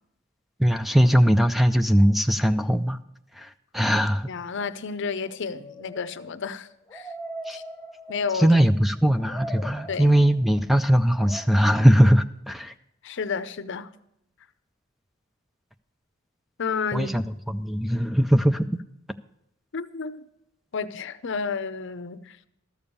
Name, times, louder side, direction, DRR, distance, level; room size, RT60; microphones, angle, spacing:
voice 1, 0.6-3.0 3.3-4.3 7.5-7.6 8.3-12.7 16.9-18.7, equal, ahead, 0.4 m, -20 dB
voice 2, 4.3-7.1 7.5-7.6 8.1-8.5 9.9-10.2 13.0-13.9 16.6-17.1 19.7-20.2 20.7-22.5, left 5 dB, 60° left, 0.6 m, -31 dB
sound 1, 5.3-8.9 9.2-10.5 11.2-11.4, equal, 15° left, 1.0 m, -40 dB
13.0 x 7.1 x 6.8 m
head